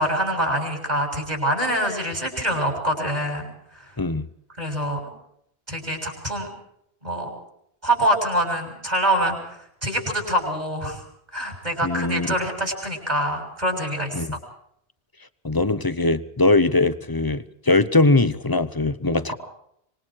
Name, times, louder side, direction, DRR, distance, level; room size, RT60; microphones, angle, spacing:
voice 1, 0.0-3.5 4.6-5.1 5.7-6.5 7.0-7.3 7.8-9.4 9.8-11.0 11.3-14.3, right 1 dB, 40° right, 2 dB, 7.2 m, -25 dB
voice 2, 11.8-12.3 14.1-14.4 15.4-19.3, left 2 dB, 20° left, 15 dB, 0.9 m, -21 dB
26.0 x 24.5 x 4.8 m, 0.73 s
omnidirectional pair, 1.1 m